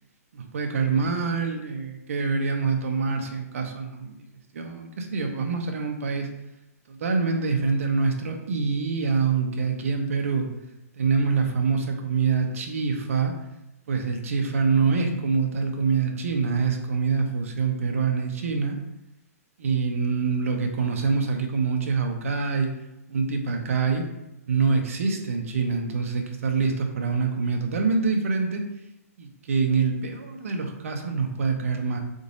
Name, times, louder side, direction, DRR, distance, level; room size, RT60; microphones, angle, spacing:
voice 1, 0.3-4.2 4.5-6.3 6.9-10.5 11.0-13.3 13.9-18.8 19.6-22.7 23.1-24.1 24.5-28.7 29.2-32.0, right 5 dB, 60° right, 3 dB, 0.7 m, -25 dB
3.9 x 3.8 x 2.5 m, 0.89 s
hypercardioid pair, 165°, 9 cm